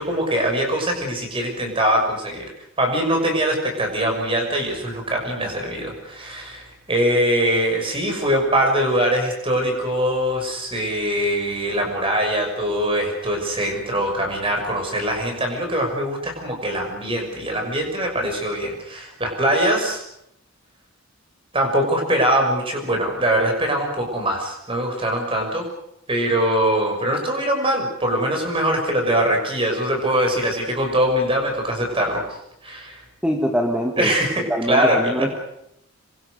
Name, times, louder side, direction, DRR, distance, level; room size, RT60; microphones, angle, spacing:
voice 1, 0.0-2.5 2.8-20.0 21.5-25.7 26.1-32.2 32.6-33.0 34.0-35.3, right 1 dB, 25° right, 2 dB, 6.4 m, -22 dB
voice 2, 33.2-34.1 34.4-35.3, equal, 5° right, 3 dB, 1.7 m, -23 dB
26.5 x 24.0 x 6.5 m, 0.78 s
head